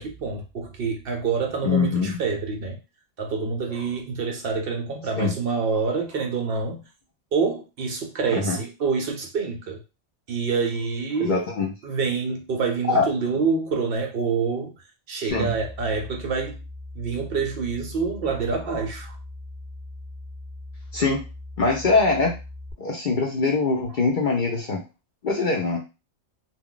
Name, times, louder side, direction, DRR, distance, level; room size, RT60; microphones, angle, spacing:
voice 1, 0.0-2.8 3.2-6.8 7.3-9.8 10.3-11.5 11.8-14.7 15.1-16.6 16.9-19.2, right 5 dB, 60° right, 3 dB, 0.6 m, -27 dB
voice 2, 1.6-2.2 5.2-5.3 8.3-8.6 11.2-11.7 12.9-13.1 15.3-15.5 20.9-21.2 21.6-22.3 22.8-24.8 25.2-25.8, left 4 dB, 55° left, 0 dB, 0.6 m, -22 dB
sound 1, 15.3-22.7, left 2 dB, 10° left, 0.5 m, -40 dB
2.3 x 2.2 x 3.6 m, 0.28 s
omnidirectional pair, 1.2 m